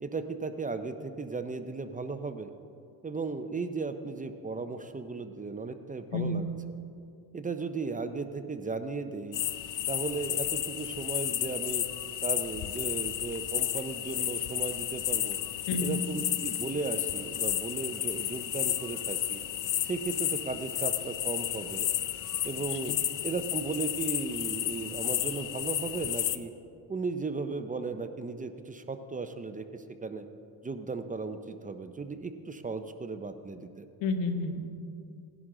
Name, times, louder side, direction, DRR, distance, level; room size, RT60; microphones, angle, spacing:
voice 1, 0.0-2.5 3.0-6.4 7.3-9.4 9.9-11.8 12.2-15.4 15.8-19.4 19.8-21.9 22.4-23.0 23.2-26.5 26.9-30.3 30.6-33.9, right 4 dB, 20° right, 9 dB, 0.5 m, -36 dB
voice 2, 6.1-6.4 15.7-16.0 22.9-23.0 34.0-34.7, left 3 dB, 85° left, 7 dB, 1.2 m, -30 dB
sound 1, 9.3-26.4, left 12 dB, 45° left, 0.6 m, -32 dB
17.5 x 11.0 x 3.8 m, 2.5 s
cardioid pair, 115°, 43 cm